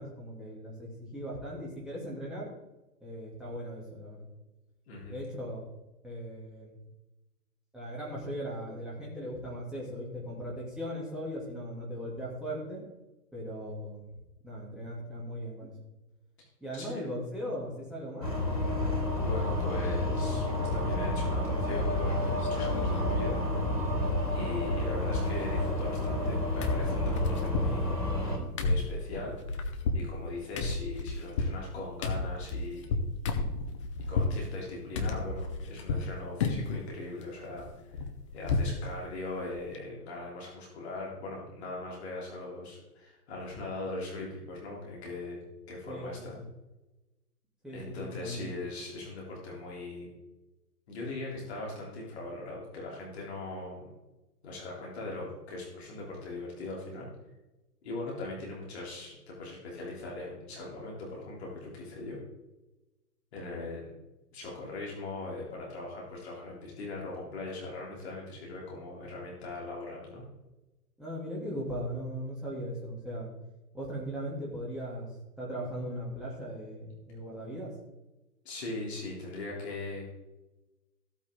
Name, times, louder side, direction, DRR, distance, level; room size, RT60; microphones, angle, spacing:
voice 1, 0.0-2.5 3.0-4.3 5.1-5.6 6.0-6.7 7.7-12.8 13.3-14.0 14.4-15.7 16.6-18.3 45.9-46.1 47.6-48.4 71.0-73.3 73.7-75.1 75.4-77.7, equal, ahead, -6 dB, 2.6 m, -38 dB
voice 2, 4.9-5.2 16.8-17.0 19.2-23.4 24.3-28.0 28.6-29.3 29.9-32.9 34.0-37.7 37.9-38.0 38.3-45.4 45.7-46.3 47.7-50.1 50.9-53.9 54.4-57.1 57.8-62.2 63.3-63.8 64.3-70.2 78.5-80.0, left 2 dB, 40° left, -3 dB, 3.5 m, -40 dB
sound 1, 18.2-28.4, left 1 dB, 90° left, 3.7 m, -30 dB
sound 2, 21.7-22.0 22.4-23.2 23.5-23.6 23.9-24.7 25.0-26.3 26.6-34.4 34.9-36.1 36.4-36.8 37.2-38.8 39.1-39.2 39.6-39.8, left 3 dB, 20° left, 0.8 m, -32 dB
14.5 x 8.5 x 3.7 m, 1.0 s
figure-of-eight pair, 130°, 49 cm